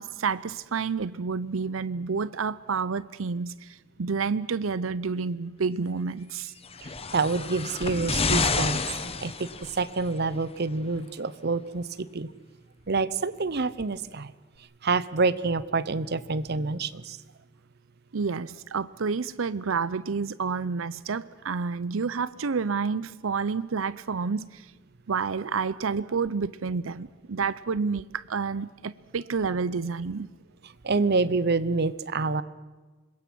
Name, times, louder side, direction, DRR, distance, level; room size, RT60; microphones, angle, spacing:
voice 1, 0.0-6.5 18.1-24.7 25.1-30.3, right 5 dB, 90° right, 0.6 m, -29 dB
sound 1, 6.6-10.0 11.0-11.1, left 4 dB, 30° left, 1.2 m, -29 dB
voice 2, 6.8-8.8 9.2-12.3 12.9-14.3 14.8-17.2 30.8-32.4, right 3 dB, 55° right, 0.9 m, -27 dB
26.0 x 22.0 x 6.2 m
head